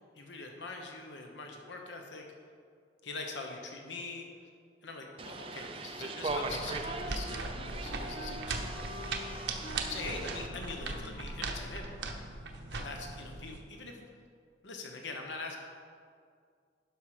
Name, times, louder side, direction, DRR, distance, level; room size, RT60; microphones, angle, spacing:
voice 1, 0.2-2.2 3.0-4.3 4.8-8.8 9.9-11.9 12.7-14.0 14.6-15.6, left 3 dB, 85° left, 2 dB, 1.0 m, -43 dB
sound 1, 5.2-10.5, right 3 dB, 30° right, 0.5 m, -40 dB
sound 2, 6.3-13.6, right 3 dB, 80° right, 0.9 m, -39 dB
Wind instrument woodwind instrument, 6.4-12.1, left 2 dB, 50° left, 1.3 m, -49 dB
11.5 x 5.6 x 4.9 m, 2.1 s
head